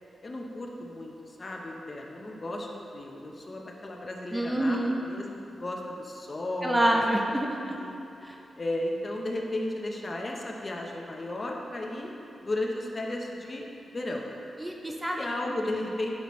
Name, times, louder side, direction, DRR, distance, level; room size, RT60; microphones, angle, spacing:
voice 1, 0.2-7.0 7.7-7.9 8.6-12.1 12.4-13.7 13.9-14.3 15.2-16.1, left 1 dB, 35° left, 0 dB, 0.9 m, -34 dB
voice 2, 4.3-5.0 6.6-7.8 8.2-8.4 14.6-15.8, right 1 dB, 15° right, 0 dB, 0.6 m, -27 dB
10.5 x 5.8 x 3.2 m, 2.7 s
wide cardioid pair, 105°, 0 cm